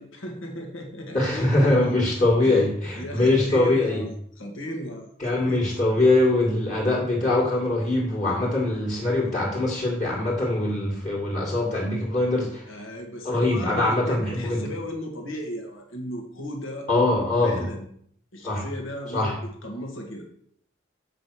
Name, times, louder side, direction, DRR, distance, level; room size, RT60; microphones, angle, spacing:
voice 1, 0.0-2.0 2.4-2.7 3.0-5.1 5.4-5.6 12.7-16.9 17.4-17.9 18.3-20.3, equal, 80° left, 2 dB, 1.9 m, -36 dB
voice 2, 1.1-4.0 5.2-12.7 13.2-14.6 16.9-17.7 18.4-18.6 19.1-19.4, left 2 dB, 35° left, -4 dB, 2.2 m, -22 dB
7.7 x 5.1 x 6.3 m, 0.64 s
head